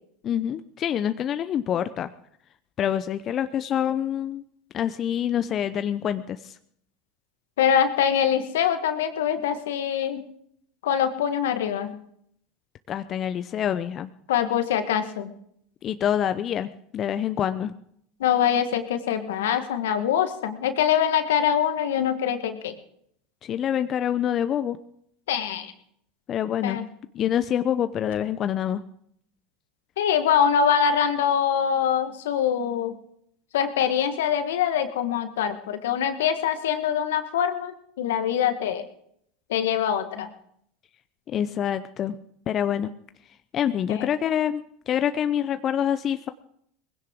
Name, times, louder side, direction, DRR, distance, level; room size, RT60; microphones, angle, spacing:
voice 1, 0.2-2.1 2.8-4.4 4.7-6.6 12.9-14.1 15.8-17.7 23.4-24.8 26.3-26.8 27.1-28.8 41.3-42.1 42.5-42.9 43.5-46.3, left 9 dB, 40° left, 11 dB, 0.6 m, -26 dB
voice 2, 7.6-10.2 10.8-11.9 14.3-15.3 18.2-22.7 25.3-25.7 26.6-26.8 30.0-32.9 33.5-38.8 39.5-40.3 43.9-44.1, left 8 dB, 75° left, 9 dB, 1.5 m, -24 dB
20.5 x 16.5 x 3.7 m, 0.71 s
hypercardioid pair, 80°, 0 cm